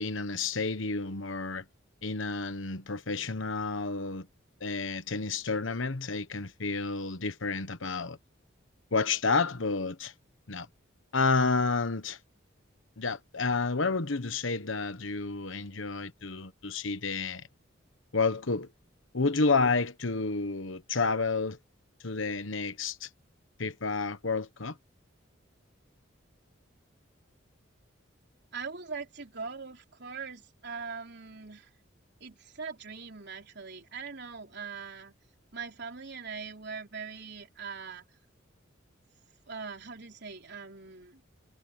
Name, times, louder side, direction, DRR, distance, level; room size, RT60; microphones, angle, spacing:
voice 1, 0.0-1.6 2.0-4.3 4.6-8.2 8.9-10.1 10.5-10.7 11.1-12.2 13.0-17.4 18.1-18.7 19.1-21.6 22.0-23.1 23.6-24.8, left 4 dB, 70° left, 1.2 m, -30 dB
voice 2, 28.5-31.7 32.2-35.1 35.5-38.1 39.5-41.2, right 5 dB, 55° right, 3.8 m, -41 dB
head